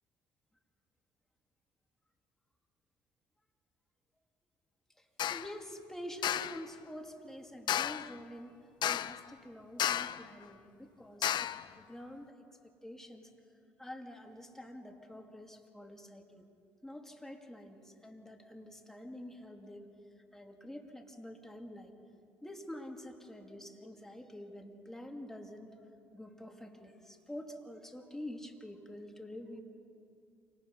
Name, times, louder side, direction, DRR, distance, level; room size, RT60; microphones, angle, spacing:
voice 1, 5.0-8.6 8.9-11.3 11.8-12.4 12.8-13.3 13.8-16.4 16.8-19.9 20.3-21.9 22.4-25.7 26.1-29.6, left 1 dB, 5° left, 3 dB, 2.8 m, -47 dB
sound 1, 5.2-5.5 6.2-6.6 7.7-8.1 8.8-9.3 9.8-10.3 11.2-11.7, left 10 dB, 55° left, 0.5 m, -33 dB
28.0 x 19.0 x 5.6 m, 2.5 s
hypercardioid pair, 55°, 9 cm